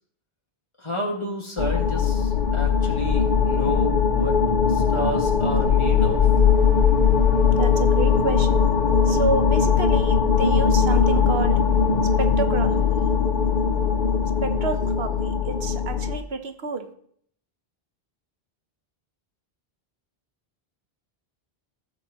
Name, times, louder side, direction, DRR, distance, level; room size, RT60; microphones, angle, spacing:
voice 1, 0.8-4.4 4.7-6.2, equal, 30° left, -1 dB, 2.0 m, -31 dB
sound 1, 1.6-16.2, left 6 dB, 50° left, 0.8 m, -20 dB
voice 2, 7.6-8.7 9.1-11.6 12.2-12.8 14.4-16.9, right 4 dB, 75° right, 7 dB, 1.2 m, -29 dB
15.0 x 7.2 x 3.0 m, 0.63 s
omnidirectional pair, 1.0 m